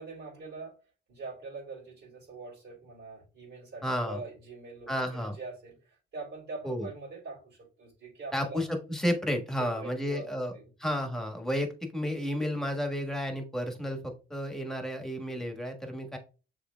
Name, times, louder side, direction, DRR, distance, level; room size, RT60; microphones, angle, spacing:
voice 1, 0.0-8.6 9.6-10.7, right 3 dB, 65° right, -7 dB, 2.5 m, -44 dB
voice 2, 3.8-4.2 4.9-5.3 6.6-6.9 8.3-10.5 10.8-16.2, equal, ahead, 4 dB, 1.3 m, -32 dB
6.8 x 3.1 x 2.2 m, 0.34 s
cardioid pair, 90°, 20 cm